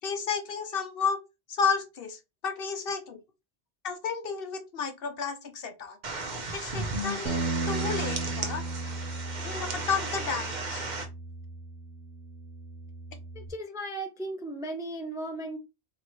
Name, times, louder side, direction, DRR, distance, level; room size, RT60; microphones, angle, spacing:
voice 1, 0.0-1.2 1.5-3.2 3.8-6.0 6.5-7.4 7.7-8.9 9.4-10.9, left 5 dB, 60° left, 0.9 m, -32 dB
sound 1, 6.0-11.1, right 2 dB, 45° right, 0.9 m, -35 dB
Bass guitar, 7.2-13.5, right 3 dB, 85° right, 1.0 m, -35 dB
voice 2, 13.3-15.6, right 1 dB, 5° right, 0.4 m, -36 dB
3.1 x 2.9 x 4.5 m
omnidirectional pair, 1.1 m